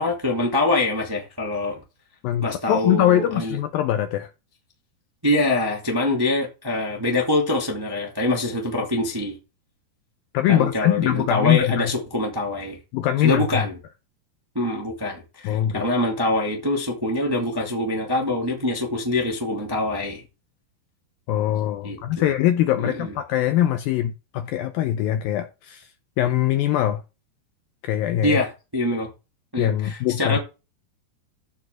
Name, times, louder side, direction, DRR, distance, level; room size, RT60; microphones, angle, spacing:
voice 1, 0.0-1.8 2.4-3.6 5.2-9.4 10.5-12.8 13.2-13.8 14.5-20.2 21.8-22.3 22.8-23.1 28.2-29.1 29.5-30.4, left 2 dB, 15° right, 0.8 m, -24 dB
voice 2, 2.2-4.3 10.3-11.9 12.9-13.6 15.4-15.8 21.3-25.9 26.2-27.0 27.8-28.4 29.6-30.4, left 12 dB, 90° left, 2.1 m, -22 dB
14.5 x 4.9 x 3.8 m
omnidirectional pair, 4.9 m